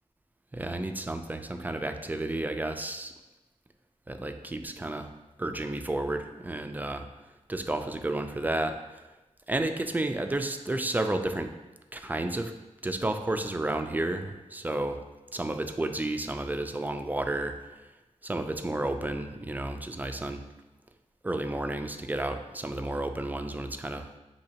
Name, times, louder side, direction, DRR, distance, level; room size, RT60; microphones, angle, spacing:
voice 1, 0.5-3.1 4.1-5.1 5.4-7.1 7.5-9.0 9.5-11.5 11.9-12.5 12.8-15.0 15.3-17.5 18.2-20.4 21.2-24.1, right 2 dB, 15° right, 6 dB, 0.3 m, -31 dB
6.5 x 2.8 x 2.8 m, 1.1 s
wide cardioid pair, 90°, 12 cm